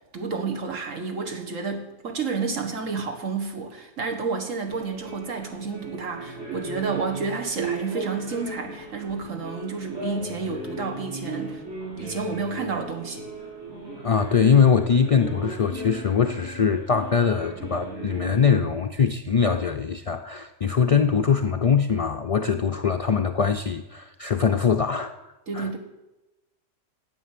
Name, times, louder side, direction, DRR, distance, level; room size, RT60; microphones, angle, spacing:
voice 1, 0.1-11.6 12.0-13.3 25.5-25.8, right 4 dB, 90° right, 3 dB, 1.9 m, -30 dB
sound 1, 4.7-18.6, right 2 dB, 70° right, 6.0 m, -37 dB
voice 2, 14.0-25.1 25.5-25.7, left 6 dB, 65° left, 5 dB, 0.3 m, -22 dB
9.9 x 8.3 x 7.5 m, 1.0 s
omnidirectional pair, 1.3 m